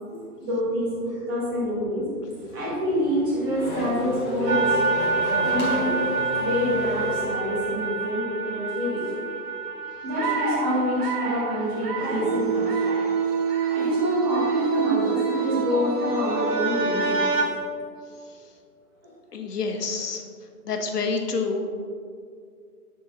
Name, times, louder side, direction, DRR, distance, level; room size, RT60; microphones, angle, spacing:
voice 1, 0.4-2.1 2.5-5.0 5.4-6.0 6.4-9.3 10.0-12.9 13.7-17.4, equal, 15° right, -7 dB, 1.1 m, -27 dB
Race car auto racing / Accelerating revving vroom, 2.4-8.0, left 1 dB, 35° left, 1.3 m, -33 dB
sound 1, 4.5-17.4, right 4 dB, 85° right, 1.1 m, -26 dB
voice 2, 19.3-20.2 20.7-21.7, left 4 dB, 80° left, 4 dB, 1.0 m, -27 dB
9.3 x 3.9 x 2.6 m, 2.3 s
hypercardioid pair, 160°, 47 cm